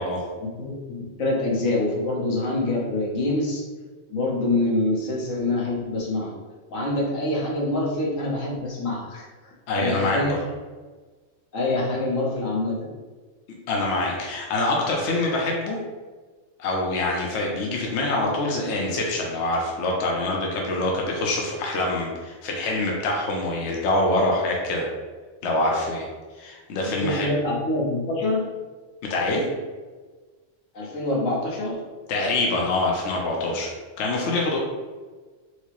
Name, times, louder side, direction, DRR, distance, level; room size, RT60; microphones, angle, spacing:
voice 1, 0.4-3.6 4.1-6.3 6.7-10.4 11.5-12.9 27.0-28.5 30.7-31.8, left 2 dB, 85° left, -4 dB, 1.2 m, -25 dB
voice 2, 9.7-10.4 13.7-15.8 16.6-24.9 25.4-26.1 26.4-27.3 29.1-29.5 32.1-34.6, left 2 dB, 65° left, -1 dB, 0.9 m, -25 dB
4.5 x 2.0 x 2.9 m, 1.4 s
omnidirectional pair, 1.3 m